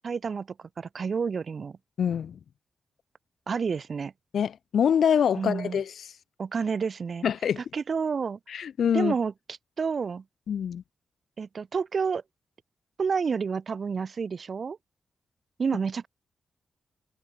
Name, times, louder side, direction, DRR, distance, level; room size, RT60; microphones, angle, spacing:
voice 1, 0.0-0.5 0.8-1.8 3.5-4.1 5.4-5.8 6.4-7.2 7.6-8.4 8.9-9.3 9.8-10.2 11.4-12.2 13.0-14.8 15.6-16.1, right 5 dB, 50° right, 3.5 m, -29 dB
voice 2, 2.0-2.4 4.3-6.1 7.2-7.6 8.5-9.1 10.5-10.8, left 8 dB, 75° left, 4.7 m, -25 dB
cardioid pair, 100°, 0 cm